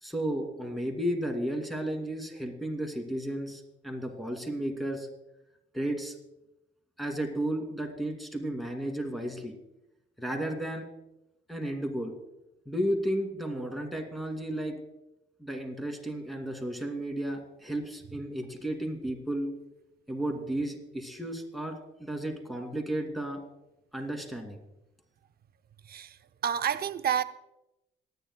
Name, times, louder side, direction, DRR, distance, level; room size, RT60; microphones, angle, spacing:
voice 1, 0.0-5.1 5.7-6.2 7.0-9.6 10.2-10.9 11.5-12.1 12.7-14.8 15.4-19.5 20.1-23.4 23.9-24.6, right 1 dB, ahead, 2.1 m, -33 dB
voice 2, 25.8-27.2, right 8 dB, 50° right, 0.6 m, -30 dB
27.0 x 9.3 x 2.2 m
cardioid pair, 90°, 20 cm